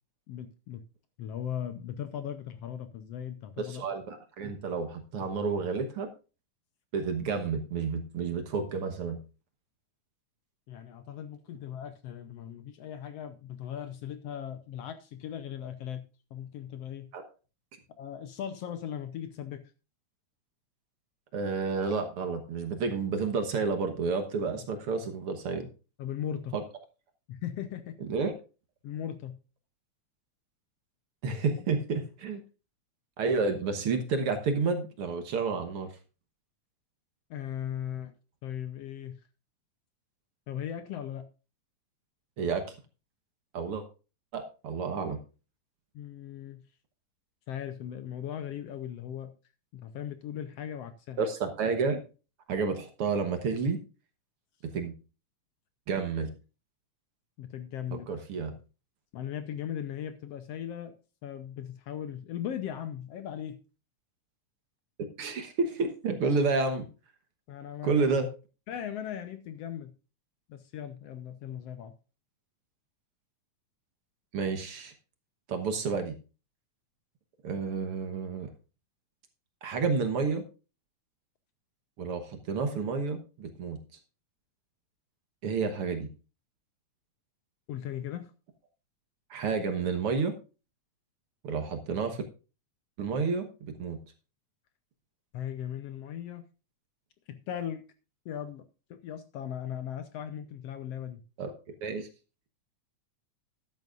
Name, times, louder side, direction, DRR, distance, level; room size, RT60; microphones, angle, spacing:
voice 1, 0.3-0.8 1.2-3.8 10.7-16.1 16.3-17.1 18.0-19.6 26.0-26.5 27.3-27.9 28.8-29.4 31.6-31.7 37.3-38.1 38.4-39.2 40.5-41.2 45.9-46.6 47.5-49.3 49.7-51.3 57.4-58.1 59.1-60.9 61.2-63.6 67.5-68.0 68.7-69.9 70.5-71.9 87.7-88.3 95.3-96.4 97.3-97.8 98.2-98.6 98.9-101.2, left 9 dB, 70° left, 10 dB, 1.7 m, -38 dB
voice 2, 3.6-6.1 6.9-9.2 17.1-17.3 21.3-25.7 26.5-26.6 28.0-28.3 31.2-32.4 33.2-35.9 42.4-42.8 43.5-43.8 44.3-45.2 51.2-52.0 52.5-53.8 54.6-54.9 55.9-56.3 57.9-58.5 65.2-66.9 67.8-68.3 74.3-74.9 75.5-76.1 77.4-78.5 79.6-80.5 82.0-83.8 85.4-86.1 89.3-90.3 91.4-92.2 93.0-94.0 101.4-101.5 101.8-102.1, right 4 dB, 60° right, 7 dB, 1.9 m, -30 dB
13.0 x 11.0 x 2.5 m, 0.32 s
omnidirectional pair, 3.3 m